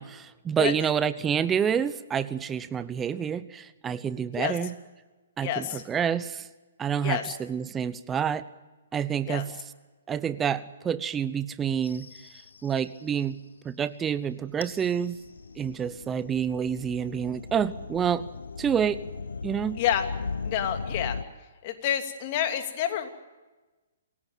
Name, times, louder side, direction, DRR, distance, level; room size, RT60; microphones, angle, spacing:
voice 1, 0.0-4.7 5.4-6.5 6.8-8.4 8.9-9.5 10.1-12.1 12.6-13.4 13.6-15.2 15.6-18.3 18.6-19.0 19.4-19.8, right 8 dB, 15° right, 15 dB, 0.8 m, -28 dB
voice 2, 5.4-5.8 7.0-7.2 9.3-9.4 19.8-20.0 20.4-21.2 21.6-23.1, left 10 dB, 40° left, 6 dB, 2.8 m, -28 dB
sound 1, 11.8-13.0 14.5-21.2, left 4 dB, 75° left, 1.1 m, -38 dB
27.5 x 17.5 x 9.1 m, 1.2 s
figure-of-eight pair, 125°, 0 cm